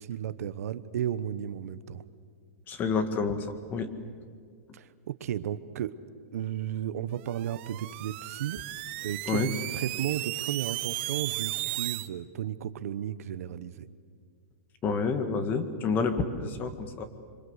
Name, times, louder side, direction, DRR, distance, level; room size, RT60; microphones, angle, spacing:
voice 1, 0.0-2.0 4.7-6.0 6.3-8.6 9.0-13.9, right 10 dB, 70° right, 14 dB, 1.1 m, -34 dB
voice 2, 2.7-3.9 9.3-9.5 14.8-17.0, left 4 dB, 25° left, 9 dB, 1.9 m, -29 dB
sound 1, 7.2-12.1, right 18 dB, 45° right, 0.9 m, -35 dB
27.0 x 26.0 x 8.2 m, 2.1 s
supercardioid pair, 155°, 8 cm